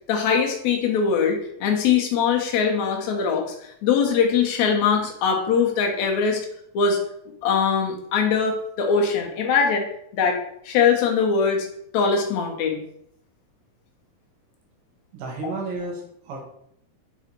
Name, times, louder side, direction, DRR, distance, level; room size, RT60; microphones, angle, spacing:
voice 1, 0.1-3.5 3.8-6.5 6.7-7.0 7.4-9.9 10.1-11.7 11.9-12.8 15.4-15.5, left 6 dB, 65° left, 1 dB, 1.9 m, -22 dB
voice 2, 15.1-16.4, right 3 dB, 80° right, 0 dB, 3.3 m, -32 dB
7.1 x 4.1 x 4.5 m, 0.71 s
omnidirectional pair, 4.5 m